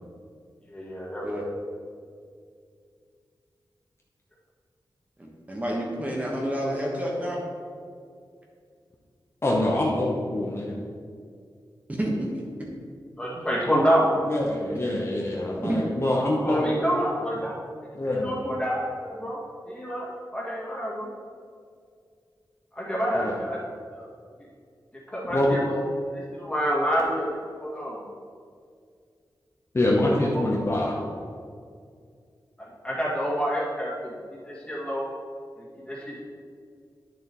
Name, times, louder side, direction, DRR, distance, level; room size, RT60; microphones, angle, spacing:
voice 1, 0.7-1.4 13.2-14.1 16.4-17.6 18.1-19.4 19.7-21.1 22.7-23.6 23.9-24.1 25.1-27.3 27.6-28.0 30.3-30.5 32.6-34.2 34.5-35.1 35.6-36.2, equal, 15° left, -5 dB, 2.0 m, -28 dB
voice 2, 5.2-7.4 11.9-12.4 15.6-15.9 23.1-23.2, equal, 20° right, -3 dB, 1.2 m, -29 dB
voice 3, 9.4-10.8 14.2-16.7 17.9-18.3 23.2-23.4 25.3-25.6 29.7-31.0, left 1 dB, 35° left, -3 dB, 0.8 m, -25 dB
9.6 x 6.7 x 3.0 m, 2.2 s
wide cardioid pair, 110°, 8 cm